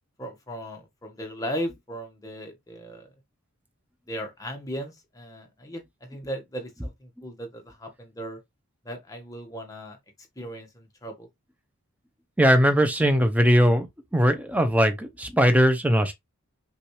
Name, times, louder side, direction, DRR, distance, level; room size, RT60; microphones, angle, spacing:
voice 1, 0.2-3.1 4.1-8.4 8.8-10.0 10.4-11.3, equal, 15° left, 1.1 m, -37 dB
voice 2, 12.4-13.9 14.1-16.1, equal, 5° right, 0.6 m, -20 dB
6.0 x 2.5 x 3.1 m
head